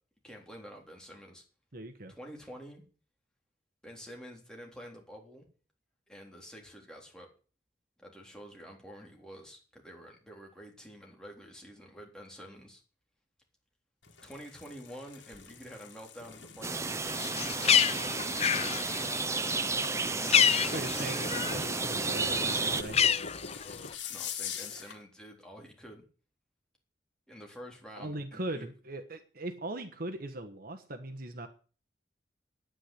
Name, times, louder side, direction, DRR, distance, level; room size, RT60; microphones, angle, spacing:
voice 1, 0.2-1.4 2.1-2.8 3.8-5.4 6.1-7.3 8.0-12.8 14.2-18.2 20.3-20.8 24.0-26.0 27.3-28.7, equal, 5° left, 0 dB, 3.8 m, -48 dB
voice 2, 1.7-2.1 20.7-23.1 28.0-31.5, right 2 dB, 55° right, 6 dB, 1.3 m, -40 dB
sound 1, 14.0-25.0, left 5 dB, 90° left, 2.2 m, -44 dB
sound 2, 16.6-22.8, right 3 dB, 15° right, 0.6 m, -32 dB
Bird, 17.1-21.7 22.0-23.9, left 8 dB, 35° left, 0.6 m, -28 dB
9.9 x 9.7 x 8.6 m, 0.38 s
head